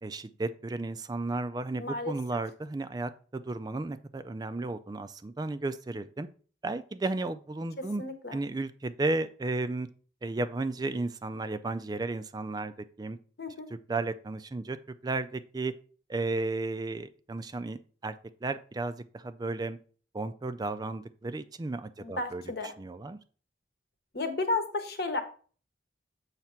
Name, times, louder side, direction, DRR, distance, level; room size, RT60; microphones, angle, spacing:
voice 1, 0.0-6.3 6.6-8.0 8.3-9.9 10.2-12.7 13.0-13.2 13.9-14.8 15.0-15.7 16.1-18.2 18.4-19.8 20.1-23.2, right 2 dB, 20° right, 0.3 m, -33 dB
voice 2, 1.8-2.1 8.0-8.4 13.4-13.7 22.0-22.7 24.1-25.2, left 3 dB, 60° left, 1.1 m, -32 dB
7.3 x 3.3 x 5.8 m
head